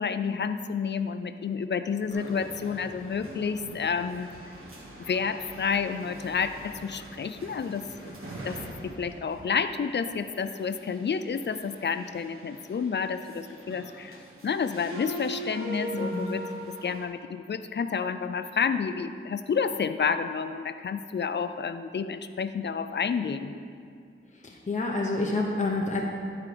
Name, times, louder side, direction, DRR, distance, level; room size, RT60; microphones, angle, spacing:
voice 1, 0.0-4.3 5.1-8.1 8.5-8.6 8.8-16.4 16.8-23.6, left 6 dB, 55° left, 11 dB, 0.4 m, -30 dB
sound 1, 2.1-17.0, right 1 dB, 85° right, 1.5 m, -42 dB
voice 2, 15.9-16.4 24.5-26.0, left 2 dB, 35° left, -1 dB, 0.8 m, -28 dB
11.0 x 4.8 x 5.0 m, 2.2 s
wide cardioid pair, 80°, 21 cm